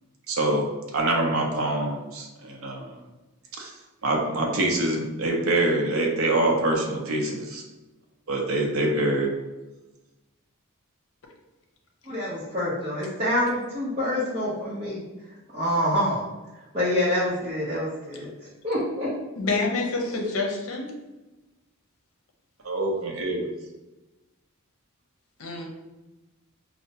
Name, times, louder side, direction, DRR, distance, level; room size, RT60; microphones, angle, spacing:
voice 1, 0.3-3.0 3.6-3.7 4.0-7.6 8.3-9.3 22.6-23.5, right 2 dB, 70° right, 0 dB, 0.6 m, -25 dB
voice 2, 12.1-15.0 15.5-16.2 16.7-18.3 18.6-19.1, left 1 dB, 30° right, -10 dB, 0.8 m, -26 dB
voice 3, 19.4-20.9 25.4-25.7, left 3 dB, 70° left, 1 dB, 0.7 m, -27 dB
4.3 x 2.1 x 2.8 m, 1.1 s
head